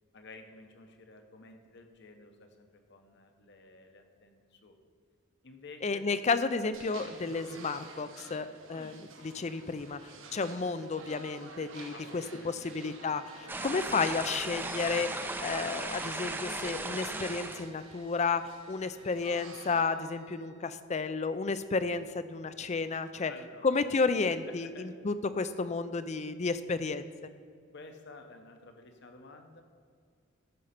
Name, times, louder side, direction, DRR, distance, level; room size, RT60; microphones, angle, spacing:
voice 1, 0.1-4.7 5.4-6.0 7.0-7.3 8.7-8.9 11.9-13.0 13.5-13.6 22.9-24.0 24.6-24.9 27.7-29.6, left 3 dB, 60° left, 5 dB, 1.1 m, -52 dB
voice 2, 5.8-10.0 10.3-23.3 23.6-27.1, left 4 dB, 35° left, 12 dB, 0.5 m, -32 dB
sound 1, 6.7-19.8, right 3 dB, 75° right, 1.3 m, -51 dB
sound 2, 13.0-20.8, right 4 dB, 50° right, 1.6 m, -59 dB
sound 3, 13.5-17.7, right 2 dB, 10° right, 0.5 m, -36 dB
13.5 x 5.4 x 5.9 m, 2.2 s
head